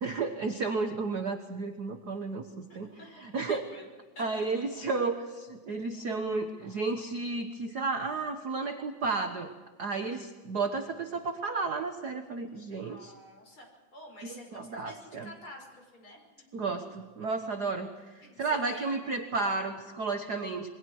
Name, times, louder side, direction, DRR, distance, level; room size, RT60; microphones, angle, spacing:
voice 1, 0.0-2.9 3.2-3.6 4.2-9.5 9.8-13.1 14.2-15.3 16.5-20.7, right 3 dB, 60° right, 5 dB, 1.1 m, -32 dB
voice 2, 3.2-3.9 4.1-4.2 12.8-13.7 13.9-16.2 18.2-19.2, left 1 dB, 40° left, 1 dB, 6.3 m, -49 dB
28.0 x 22.0 x 4.7 m, 1.3 s
omnidirectional pair, 3.6 m